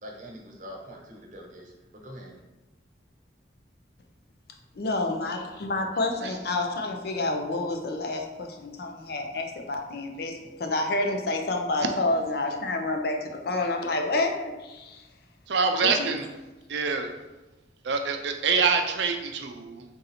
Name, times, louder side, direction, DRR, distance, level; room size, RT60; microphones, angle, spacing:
voice 1, 0.0-2.4, equal, 45° right, 0 dB, 0.8 m, -44 dB
voice 2, 4.8-10.3 10.6-14.3 14.6-15.0, left 2 dB, 55° left, 3 dB, 0.5 m, -28 dB
voice 3, 15.5-16.3 16.7-17.1 17.8-19.8, right 5 dB, 70° right, 5 dB, 0.4 m, -25 dB
3.8 x 2.7 x 4.1 m, 1.1 s
head